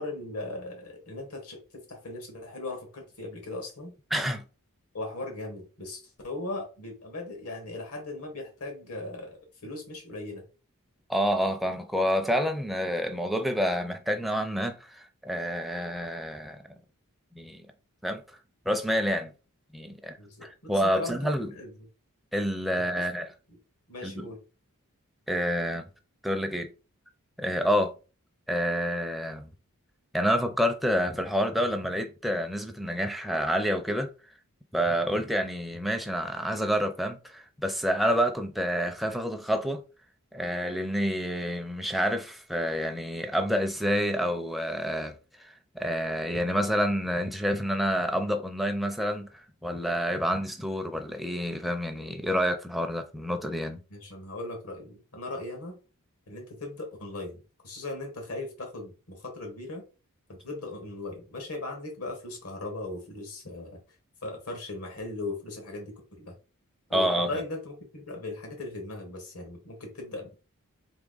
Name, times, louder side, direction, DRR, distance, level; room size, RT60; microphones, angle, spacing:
voice 1, 0.0-3.9 4.9-10.4 20.2-21.7 23.1-23.2 23.9-24.4 53.9-55.8 56.3-59.8 60.3-63.8 64.2-66.3 66.9-70.3, left 2 dB, 75° left, 1.7 m, -38 dB
voice 2, 4.1-4.4 11.1-16.7 17.3-17.7 18.0-18.2 18.7-19.3 19.7-21.5 22.3-23.3 24.0-24.3 25.3-25.9 26.2-26.7 27.4-27.9 28.5-29.5 30.1-34.1 34.7-39.8 40.3-53.8 66.9-67.4, equal, ahead, 0.5 m, -28 dB
3.5 x 3.2 x 3.9 m
head